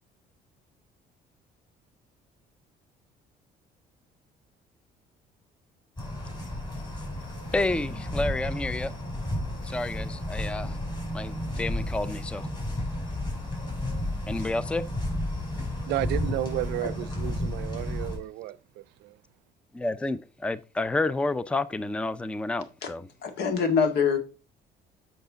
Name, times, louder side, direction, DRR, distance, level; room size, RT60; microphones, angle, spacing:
sound 1, 6.0-18.2, left 1 dB, 25° left, 4.6 m, -32 dB
voice 1, 7.5-8.9 9.6-10.8 11.1-12.5 14.3-14.8 19.7-23.1, left 2 dB, 5° left, 0.4 m, -30 dB
voice 2, 15.7-19.2, right 15 dB, 85° right, 0.5 m, -33 dB
voice 3, 23.2-24.2, left 6 dB, 80° left, 1.8 m, -24 dB
8.0 x 5.7 x 3.9 m
cardioid pair, 110°, 17 cm